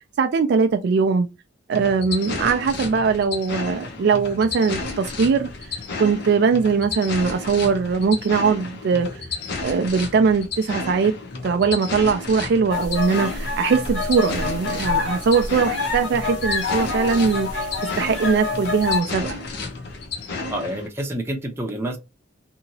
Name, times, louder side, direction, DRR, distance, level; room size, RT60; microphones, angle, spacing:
voice 1, 0.2-1.3 1.7-5.5 6.0-9.2 9.6-11.1 11.4-17.7 18.0-19.4, right 5 dB, 60° right, 0.3 m, -21 dB
sound 1, 1.7-20.9, left 3 dB, 60° left, 0.7 m, -32 dB
sound 2, 12.7-19.0, left 4 dB, 90° left, 1.0 m, -27 dB
voice 2, 20.5-22.0, right 1 dB, 15° right, 0.6 m, -28 dB
2.9 x 2.7 x 2.7 m
head